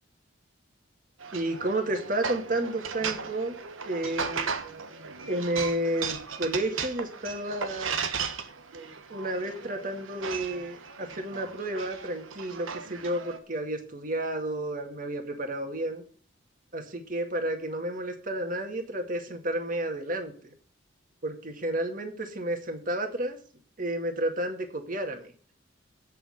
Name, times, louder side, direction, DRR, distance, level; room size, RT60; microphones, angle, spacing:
sound 1, 1.2-13.4, right 6 dB, 90° right, 1.3 m, -36 dB
voice 1, 1.3-4.5 5.3-8.0 9.1-16.0 16.7-20.3 21.2-23.4 23.8-25.3, right 1 dB, 45° right, 5 dB, 2.1 m, -31 dB
8.7 x 6.7 x 8.0 m, 0.43 s
head